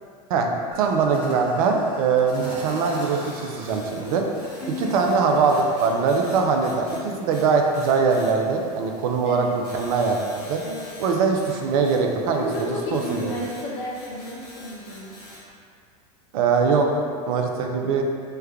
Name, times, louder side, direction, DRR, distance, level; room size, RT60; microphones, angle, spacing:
sound 1, 0.7-6.3, right 2 dB, 30° right, 0.8 m, -40 dB
voice 1, 0.8-4.2 4.8-10.6 11.0-13.3 16.3-18.0, right 5 dB, 65° right, 3 dB, 0.5 m, -22 dB
sound 2, 2.3-15.4, left 1 dB, 85° left, 1.0 m, -46 dB
voice 2, 4.6-4.9 9.2-9.6 10.6-10.9 12.3-15.1, left 1 dB, 55° left, -4 dB, 0.9 m, -32 dB
3.3 x 2.2 x 3.3 m, 2.2 s
hypercardioid pair, 90°, 20 cm